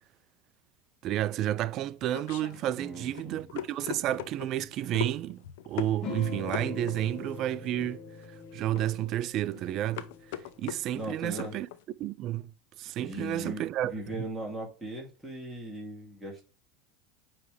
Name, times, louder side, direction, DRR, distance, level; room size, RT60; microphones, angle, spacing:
voice 1, 1.0-8.0 8.5-10.0 10.6-11.7 12.0-12.5 12.8-14.2, right 13 dB, 50° right, 0.4 m, -31 dB
sound 1, 1.4-11.8, left 11 dB, 70° left, 0.6 m, -41 dB
voice 2, 2.8-3.5 10.9-11.6 13.0-16.4, right 1 dB, 5° right, 2.3 m, -39 dB
sound 2, 6.0-10.9, left 4 dB, 40° left, 1.7 m, -42 dB
9.1 x 3.2 x 3.4 m
hypercardioid pair, 95°, 0 cm